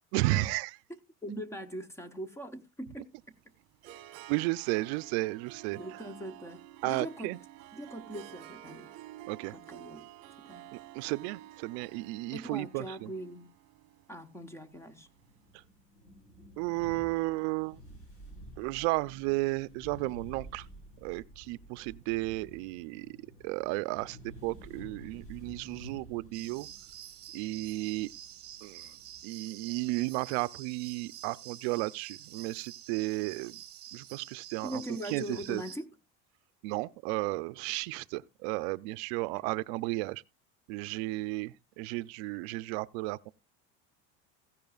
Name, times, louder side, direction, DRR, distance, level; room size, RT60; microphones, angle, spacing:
voice 1, 0.1-0.7 4.3-5.8 6.8-7.4 9.3-9.5 10.7-13.1 16.6-17.8 18.6-20.7 21.0-23.1 23.4-26.7 27.3-28.1 28.6-28.9 29.2-33.6 33.9-34.8 35.1-35.6 36.6-40.2 40.7-43.3, right 21 dB, 65° right, 0.5 m, -33 dB
voice 2, 1.2-3.1 5.7-7.3 7.7-8.9 9.5-10.1 10.4-10.7 12.3-13.5 14.1-15.1 34.6-35.9, equal, 10° left, 0.7 m, -41 dB
Harp, 3.2-15.3, right 14 dB, 45° right, 1.2 m, -51 dB
sound 1, 14.7-29.2, right 1 dB, 40° left, 6.8 m, -52 dB
sound 2, 26.3-35.8, right 12 dB, 30° right, 1.6 m, -48 dB
15.5 x 10.5 x 2.3 m
cardioid pair, 160°, 35 cm